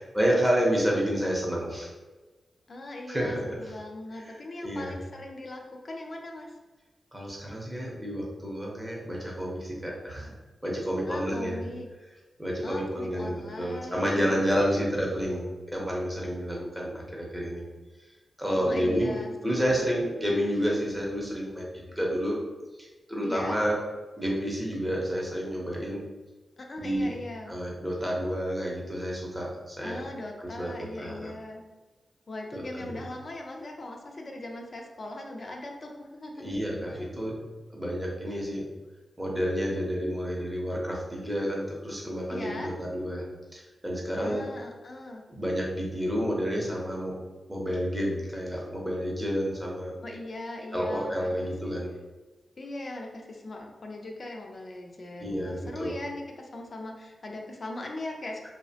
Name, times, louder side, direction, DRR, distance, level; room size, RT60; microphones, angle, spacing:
voice 1, 0.0-1.9 3.1-3.7 4.1-4.9 7.1-10.3 10.6-11.6 12.4-17.6 18.4-19.2 19.4-22.4 22.8-23.8 24.1-26.0 26.8-27.2 27.5-30.0 30.4-31.4 32.5-33.0 36.4-38.7 39.2-43.3 43.5-44.5 45.3-47.2 47.5-50.0 50.7-51.9 55.2-56.0 58.4-58.5, equal, 10° right, -3 dB, 0.7 m, -30 dB
voice 2, 2.7-6.5 11.1-11.9 12.6-14.8 18.6-19.3 19.6-19.9 23.2-23.6 26.7-27.5 29.8-31.6 32.3-36.5 37.0-37.1 42.3-42.7 44.1-45.2 50.0-51.3 51.6-51.8 52.6-58.5, left 2 dB, 45° left, 1 dB, 0.4 m, -39 dB
2.7 x 2.0 x 2.7 m, 1.2 s
wide cardioid pair, 95°, 0 cm